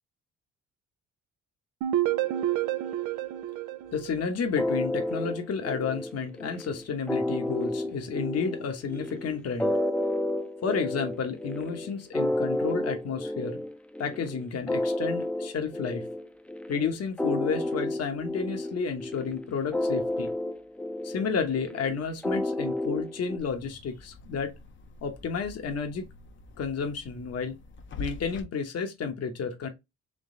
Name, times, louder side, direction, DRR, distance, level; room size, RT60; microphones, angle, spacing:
sound 1, 1.8-4.7, right 13 dB, 85° right, 0.6 m, -29 dB
voice 1, 3.9-9.7 10.6-13.6 14.0-16.1 16.7-20.3 21.0-24.5 25.0-26.0 26.6-27.5 28.0-29.7, left 5 dB, 55° left, 1.1 m, -31 dB
sound 2, 4.6-23.4, left 1 dB, 5° left, 0.6 m, -31 dB
sound 3, 23.4-28.4, left 3 dB, 40° left, 0.7 m, -45 dB
3.8 x 3.0 x 3.7 m
cardioid pair, 90°, 30 cm